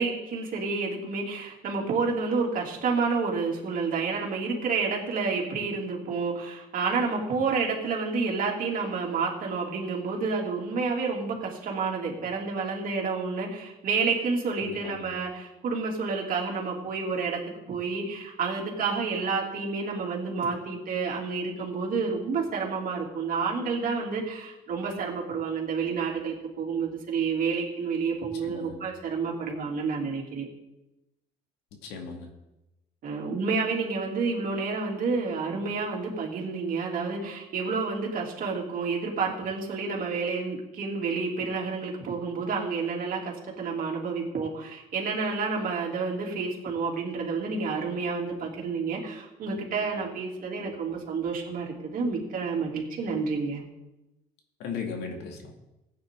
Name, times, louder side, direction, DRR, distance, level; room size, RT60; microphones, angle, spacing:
voice 1, 0.0-17.4 17.7-30.5 33.0-53.6, right 4 dB, 55° right, -1 dB, 3.0 m, -29 dB
voice 2, 14.6-15.0 28.4-28.8 31.8-32.3 54.6-55.5, left 5 dB, 90° left, 3 dB, 2.3 m, -37 dB
15.5 x 9.2 x 3.8 m, 0.96 s
cardioid pair, 110°, 17 cm